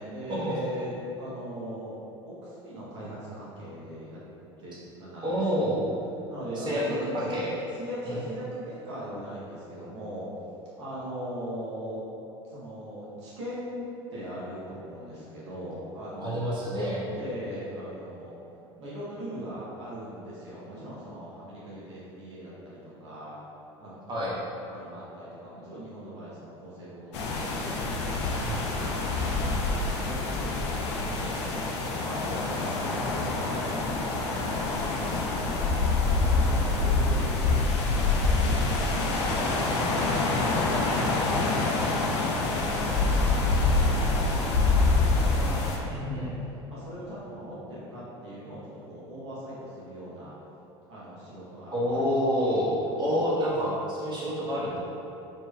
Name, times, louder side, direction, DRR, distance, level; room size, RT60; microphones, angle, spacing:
voice 1, 0.0-2.0 2.3-4.2 4.6-4.7 5.0-5.8 6.3-7.4 7.7-10.3 10.8-12.0 12.5-18.3 18.8-23.4 23.8-24.1 24.5-29.5 30.0-31.6 32.0-41.4 41.8-46.3 46.7-50.3 50.9-52.0 52.9-53.8 54.2-54.4, equal, 80° right, -8 dB, 0.9 m, -40 dB
voice 2, 5.2-5.9 6.6-6.8 7.1-7.5 16.2-17.0 24.1-24.3 28.4-28.6 45.8-46.3 51.7-54.8, equal, 30° right, -7 dB, 1.1 m, -28 dB
sound 1, 27.1-45.8, left 3 dB, 75° left, 0.5 m, -26 dB
4.2 x 3.1 x 2.3 m, 3.0 s
hypercardioid pair, 75°, 15 cm